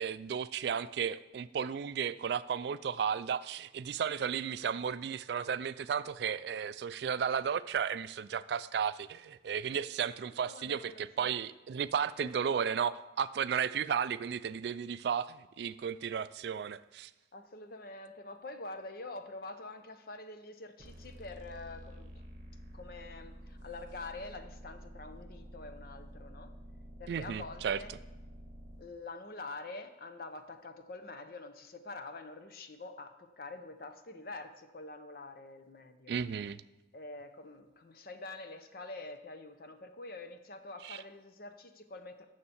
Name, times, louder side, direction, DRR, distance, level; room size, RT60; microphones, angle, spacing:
voice 1, 0.0-17.1 27.1-27.8 36.1-36.6 40.8-41.0, right 7 dB, 65° right, 16 dB, 0.3 m, -34 dB
voice 2, 10.4-11.3 12.2-12.3 17.3-22.3 22.7-26.5 27.0-27.9 28.8-36.2 36.9-42.2, left 2 dB, 50° left, 9 dB, 0.7 m, -46 dB
sound 1, 20.8-28.8, equal, 45° right, 1.2 m, -50 dB
6.9 x 6.5 x 7.1 m, 1.0 s
head